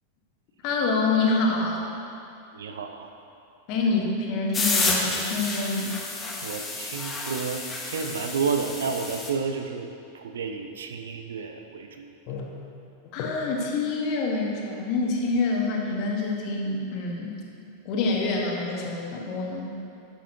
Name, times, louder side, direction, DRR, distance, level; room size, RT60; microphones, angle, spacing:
voice 1, 0.6-1.9 3.7-6.0 12.3-12.5 13.1-17.4 17.8-19.8, left 3 dB, 40° left, -1 dB, 1.3 m, -26 dB
voice 2, 2.5-3.1 6.4-9.9 10.1-12.4, right 5 dB, 65° right, 5 dB, 0.6 m, -31 dB
sound 1, 4.5-9.3, left 3 dB, 15° left, 1.0 m, -30 dB
11.0 x 7.1 x 2.9 m, 2.6 s
figure-of-eight pair, 90°, 0 cm